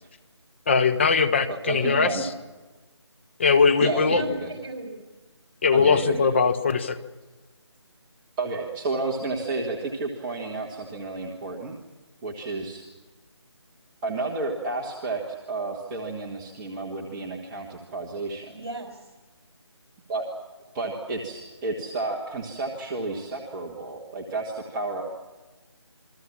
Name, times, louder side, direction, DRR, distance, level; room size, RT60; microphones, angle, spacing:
voice 1, 0.7-2.3 3.4-4.2 5.6-7.0, left 5 dB, 25° left, 10 dB, 1.1 m, -21 dB
voice 2, 1.5-2.2 3.8-4.5 5.7-6.3 8.4-11.8 12.2-12.8 14.0-18.5 20.1-20.3 20.7-25.0, right 3 dB, 10° right, -2 dB, 1.5 m, -31 dB
voice 3, 3.8-5.0 18.5-19.1, right 2 dB, 60° right, 4 dB, 4.9 m, -36 dB
27.5 x 22.5 x 7.4 m, 1.2 s
figure-of-eight pair, 165°, 15 cm